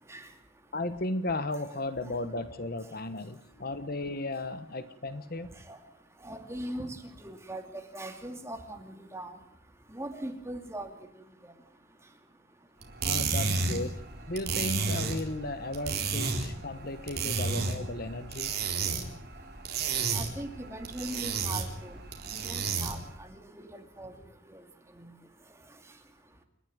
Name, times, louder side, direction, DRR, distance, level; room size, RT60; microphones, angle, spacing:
voice 1, 0.7-5.5 13.0-14.0 14.3-18.5, left 2 dB, 45° left, 12 dB, 1.2 m, -35 dB
voice 2, 6.2-7.0 7.2-7.6 7.9-9.3 9.9-10.9 14.8-14.9 20.1-22.0 22.3-23.3 23.6-24.1 24.5-24.6, right 1 dB, 15° right, 5 dB, 2.5 m, -40 dB
sound 1, 12.8-23.1, right 4 dB, 50° right, 4.0 m, -32 dB
29.0 x 11.5 x 9.5 m, 0.72 s
head